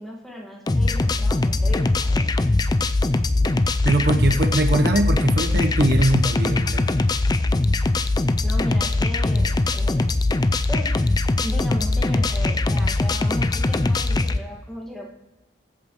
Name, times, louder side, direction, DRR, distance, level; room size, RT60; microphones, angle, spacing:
voice 1, 0.0-2.3 8.4-10.1 10.7-11.0 11.4-15.1, equal, ahead, -3 dB, 1.7 m, -36 dB
sound 1, 0.7-14.4, left 2 dB, 20° left, 0.4 m, -21 dB
voice 2, 3.8-6.9, right 1 dB, 55° right, 5 dB, 0.9 m, -21 dB
21.0 x 8.3 x 3.0 m, 1.1 s
head